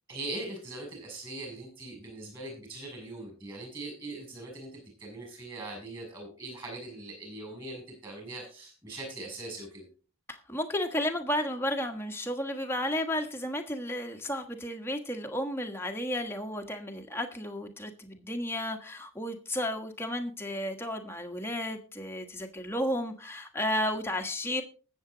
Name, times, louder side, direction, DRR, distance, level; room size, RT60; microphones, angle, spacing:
voice 1, 0.1-9.9, right 2 dB, 20° right, 2 dB, 6.7 m, -41 dB
voice 2, 10.3-24.6, left 1 dB, 10° left, 4 dB, 1.4 m, -33 dB
19.5 x 7.4 x 3.9 m, 0.37 s
head